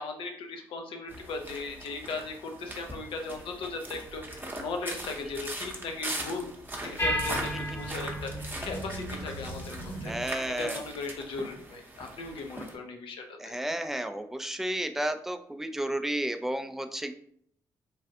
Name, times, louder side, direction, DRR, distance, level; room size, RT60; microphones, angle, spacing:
voice 1, 0.0-6.5 6.7-10.1 10.4-13.5, left 3 dB, 70° left, 3 dB, 0.6 m, -38 dB
sound 1, 1.1-12.7, right 1 dB, 20° right, 0.8 m, -40 dB
sound 2, 7.0-10.2, equal, 25° left, 0.9 m, -34 dB
voice 2, 10.0-10.8 13.4-17.1, right 1 dB, 5° right, 8 dB, 0.4 m, -32 dB
3.2 x 2.3 x 2.7 m, 0.64 s
supercardioid pair, 50°, 9 cm